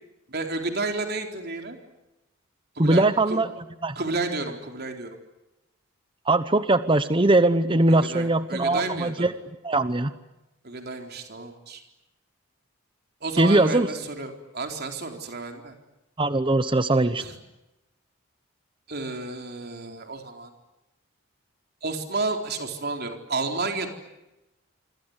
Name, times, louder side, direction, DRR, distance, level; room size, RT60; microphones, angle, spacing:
voice 1, 0.3-1.8 2.8-3.4 3.9-5.2 7.9-9.3 10.6-11.8 13.2-15.7 17.2-17.4 18.9-20.5 21.8-23.9, right 3 dB, 50° right, 4 dB, 4.2 m, -31 dB
voice 2, 2.8-3.5 3.8-3.9 6.3-9.3 9.6-10.1 13.4-13.9 16.2-17.2, right 2 dB, 25° right, 12 dB, 1.0 m, -21 dB
27.0 x 25.5 x 8.2 m, 0.97 s
head